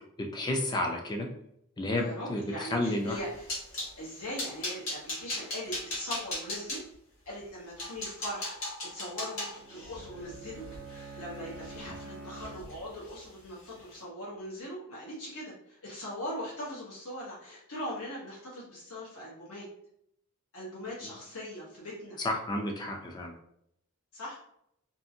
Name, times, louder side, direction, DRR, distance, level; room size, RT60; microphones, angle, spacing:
voice 1, 0.2-1.3 1.8-3.2 11.9-12.0 22.2-23.3, left 1 dB, 20° left, 2 dB, 0.3 m, -31 dB
voice 2, 2.0-3.5 4.0-6.8 7.3-10.6 10.9-19.6 20.5-22.2 24.1-24.4, equal, 85° left, -6 dB, 0.9 m, -40 dB
sound 1, 3.0-3.9 4.4-6.8 7.4-7.5 7.8-12.0 12.3-12.8 13.0-13.2 13.6-13.8, left 1 dB, 70° left, 1.3 m, -38 dB
Bowed string instrument, 9.5-13.2, right 3 dB, 70° right, 0.6 m, -47 dB
2.6 x 2.5 x 2.6 m, 0.74 s
head